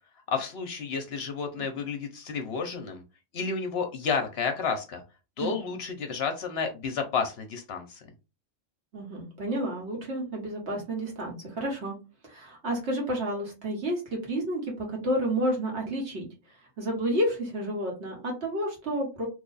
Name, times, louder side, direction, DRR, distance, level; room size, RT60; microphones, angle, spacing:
voice 1, 0.3-3.0 3.3-5.0 5.4-8.0, left 5 dB, 60° left, 6 dB, 0.8 m, -31 dB
voice 2, 5.4-5.8 8.9-12.0 12.2-16.3 16.8-19.3, right 1 dB, 65° right, -1 dB, 1.6 m, -30 dB
3.1 x 2.3 x 3.9 m, 0.29 s
omnidirectional pair, 1.3 m